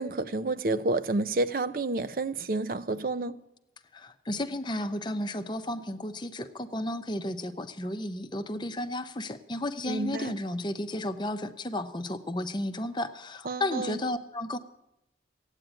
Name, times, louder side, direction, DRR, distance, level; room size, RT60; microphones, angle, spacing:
voice 1, 0.0-3.4 9.9-10.3 13.5-14.0, right 2 dB, 50° right, 0.5 m, -29 dB
voice 2, 3.9-14.6, left 1 dB, 25° left, 0.7 m, -33 dB
16.0 x 9.1 x 8.9 m
head